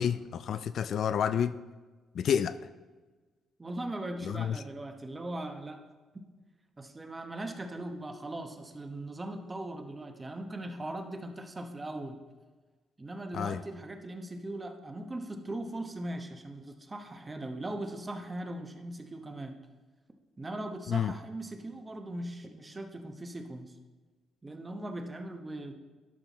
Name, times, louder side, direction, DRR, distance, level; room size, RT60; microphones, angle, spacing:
voice 1, 0.0-1.6 2.1-2.6 4.2-4.6 13.3-13.6 20.9-21.1, left 8 dB, 65° left, 13 dB, 0.3 m, -29 dB
voice 2, 3.6-5.8 6.8-12.2 13.0-19.6 20.4-23.8 24.4-25.7, right 1 dB, 20° right, 5 dB, 1.0 m, -39 dB
12.5 x 5.7 x 4.1 m, 1.3 s
cardioid pair, 90°, 0 cm